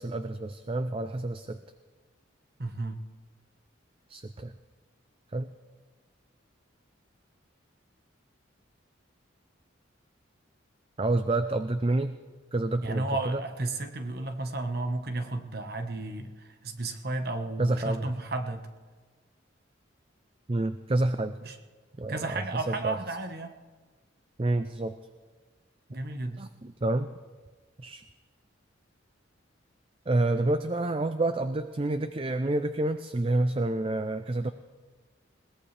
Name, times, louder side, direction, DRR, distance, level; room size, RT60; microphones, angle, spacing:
voice 1, 0.0-1.6 4.1-4.5 5.3-5.5 11.0-12.2 12.5-13.4 17.6-18.1 20.5-21.4 22.0-23.0 24.4-24.9 25.9-26.1 26.4-27.1 27.8-28.0 30.1-34.5, right 2 dB, 30° right, 10 dB, 0.5 m, -28 dB
voice 2, 2.6-3.0 12.8-18.7 21.4-21.6 22.1-23.6 25.9-26.5, right 2 dB, 50° right, 7 dB, 1.3 m, -33 dB
21.0 x 19.0 x 3.4 m, 1.4 s
head